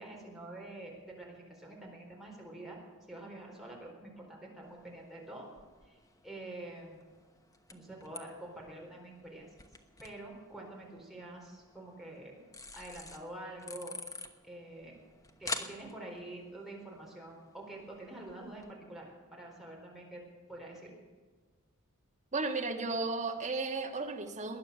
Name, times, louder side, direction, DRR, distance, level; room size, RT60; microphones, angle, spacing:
voice 1, 0.0-2.8 3.1-5.5 5.8-6.0 6.2-7.0 7.7-9.5 10.0-12.4 12.7-13.9 14.4-15.0 15.4-20.2 20.5-20.9, right 1 dB, ahead, -3 dB, 4.1 m, -47 dB
sound 1, 4.6-18.7, left 3 dB, 15° left, 1.0 m, -48 dB
voice 2, 22.3-24.6, right 3 dB, 30° right, 3 dB, 1.5 m, -34 dB
19.5 x 10.5 x 6.8 m, 1.4 s
head